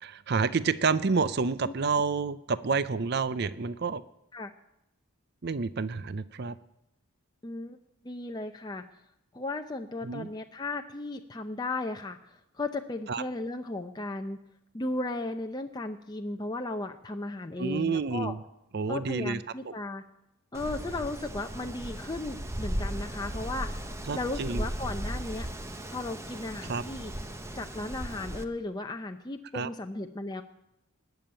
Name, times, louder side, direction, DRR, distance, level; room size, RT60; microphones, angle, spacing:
voice 1, 0.0-4.0 5.4-6.5 10.0-10.3 13.1-13.2 17.6-18.4 18.7-19.4 19.7-19.8 24.1-24.6 26.7-26.8 29.5-29.7, right 4 dB, 45° right, 15 dB, 0.5 m, -29 dB
voice 2, 7.4-7.8 8.0-8.8 9.3-14.4 14.7-18.3 18.9-20.0 20.5-25.5 25.9-27.1 27.5-30.4, left 2 dB, 20° left, 4 dB, 0.6 m, -35 dB
Wind, 20.5-28.4, equal, 10° right, 0.8 m, -36 dB
20.0 x 7.1 x 8.9 m, 0.88 s
head